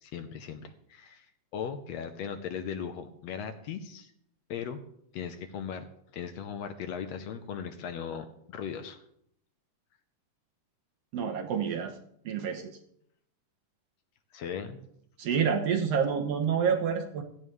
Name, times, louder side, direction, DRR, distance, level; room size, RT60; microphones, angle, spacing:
voice 1, 0.0-4.1 4.5-4.8 5.1-5.8 6.1-9.0 14.3-14.8, left 7 dB, 70° left, 8 dB, 1.8 m, -38 dB
voice 2, 11.1-11.9 12.2-12.8 15.2-17.2, right 7 dB, 65° right, 5 dB, 1.8 m, -28 dB
16.5 x 13.0 x 3.2 m, 0.71 s
omnidirectional pair, 3.5 m